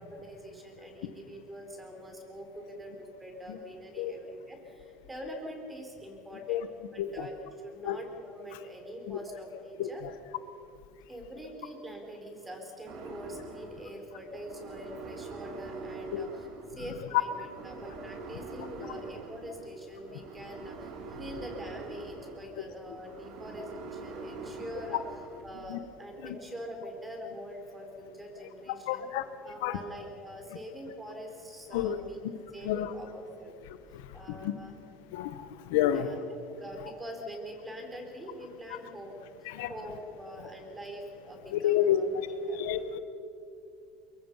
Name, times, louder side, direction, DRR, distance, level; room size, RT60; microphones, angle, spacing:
voice 1, 0.0-6.6 6.9-10.0 11.1-25.0 25.4-29.1 29.4-32.2 32.5-33.5 34.1-34.7 35.9-39.1 39.4-42.2 42.5-42.6, equal, 10° right, 3 dB, 4.6 m, -44 dB
sound 1, 12.9-25.4, right 3 dB, 60° right, 3.0 m, -44 dB
voice 2, 28.9-29.2 29.6-29.8 31.7-32.0 32.6-32.9 33.9-34.5 35.1-36.1 39.5-39.7 41.5-42.0 42.5-43.0, left 12 dB, 85° left, 11 dB, 1.2 m, -29 dB
23.5 x 23.0 x 5.7 m, 2.5 s
supercardioid pair, 130°, 0 cm